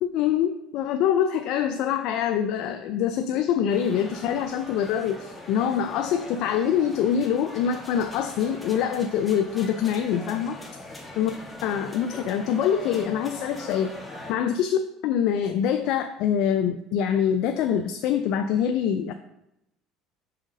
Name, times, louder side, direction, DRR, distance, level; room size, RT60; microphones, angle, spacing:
voice 1, 0.0-10.6 11.2-11.3 11.6-14.0 14.3-19.1, left 8 dB, 65° left, 8 dB, 0.4 m, -25 dB
sound 1, 3.7-14.3, left 2 dB, 15° left, 1.6 m, -41 dB
5.6 x 3.6 x 5.2 m, 0.84 s
supercardioid pair, 85°, 0 cm